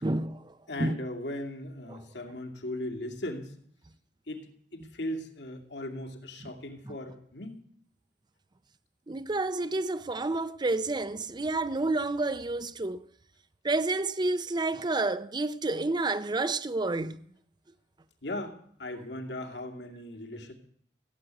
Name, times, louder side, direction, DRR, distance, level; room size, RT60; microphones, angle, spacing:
voice 1, 0.0-1.1 1.9-2.0 4.8-4.9 6.9-7.0 9.1-13.0 13.6-17.3, right 2 dB, 25° right, 0.6 m, -30 dB
voice 2, 0.7-3.5 4.3-4.5 4.7-7.5 18.2-20.5, left 1 dB, 75° left, 2.5 m, -38 dB
16.5 x 8.2 x 9.0 m
head